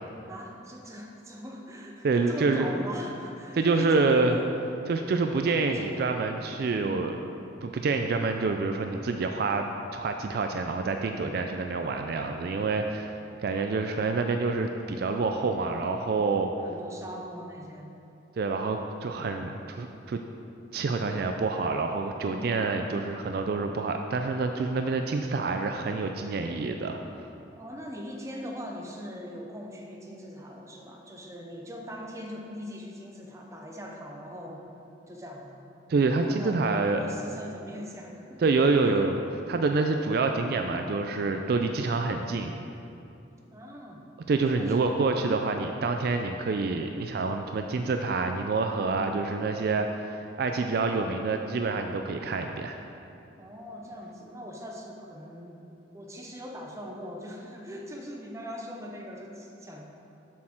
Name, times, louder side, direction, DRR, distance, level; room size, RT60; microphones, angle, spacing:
voice 1, 0.3-4.5 5.6-6.2 6.8-7.2 16.6-18.0 22.2-22.6 27.6-34.6 35.1-35.5 36.3-38.4 41.3-41.8 43.5-44.1 44.5-44.7 48.9-49.3 53.4-55.6 55.9-59.9, equal, 15° right, 0 dB, 0.7 m, -41 dB
voice 2, 2.0-2.7 3.5-4.4 4.9-7.2 7.6-9.7 9.9-16.5 18.4-20.2 20.7-27.0 35.9-37.0 38.4-42.6 44.3-52.8, right 3 dB, 55° right, 5 dB, 0.3 m, -27 dB
7.3 x 6.4 x 4.4 m, 2.7 s
head